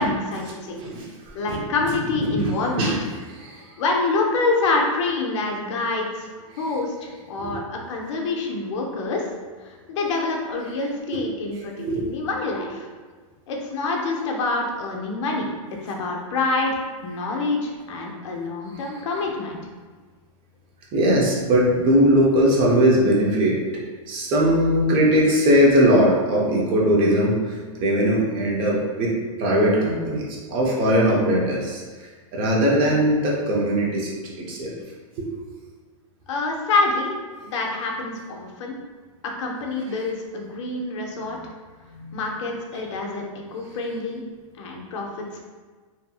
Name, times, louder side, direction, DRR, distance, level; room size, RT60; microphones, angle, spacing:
voice 1, 0.0-0.8 1.3-3.0 3.8-6.3 6.6-9.3 9.6-12.9 13.5-15.5 15.8-19.6 36.3-37.2 37.4-38.7 39.2-41.4 42.1-43.2 43.5-44.2 44.6-45.4, left 3 dB, 60° left, 0 dB, 0.6 m, -26 dB
voice 2, 0.8-1.6 2.2-2.5 2.8-3.0 3.3-3.6 7.4-7.6 11.1-11.3 11.8-12.1 12.6-12.7 20.9-23.6 24.1-34.7 35.2-35.3 41.9-42.2, equal, 30° right, -3 dB, 0.6 m, -20 dB
2.7 x 2.6 x 2.3 m, 1.5 s
hypercardioid pair, 150°, 18 cm